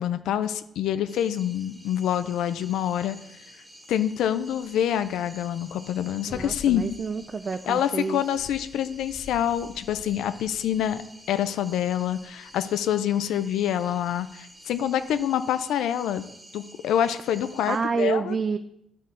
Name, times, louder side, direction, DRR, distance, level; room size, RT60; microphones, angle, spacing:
voice 1, 0.0-3.2 3.9-6.9 7.7-11.0 11.3-16.3 16.5-18.4, left 10 dB, 85° left, 11 dB, 0.4 m, -26 dB
sound 1, 1.1-17.8, right 1 dB, 15° right, 1.5 m, -50 dB
sound 2, 4.4-15.2, left 5 dB, 35° left, 0.7 m, -48 dB
voice 2, 6.3-8.2 17.7-18.6, right 5 dB, 35° right, 9 dB, 0.3 m, -28 dB
10.5 x 3.7 x 4.2 m, 0.79 s
cardioid pair, 90°, 0 cm